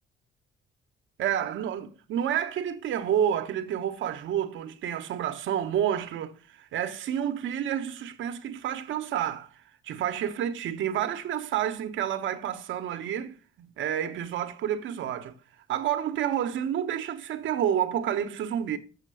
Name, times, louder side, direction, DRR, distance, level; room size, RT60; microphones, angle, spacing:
voice 1, 1.2-9.5 9.8-15.3 15.7-18.8, right 10 dB, 75° right, 1.1 m, -29 dB
7.4 x 6.6 x 6.2 m
cardioid pair, 90°, 20 cm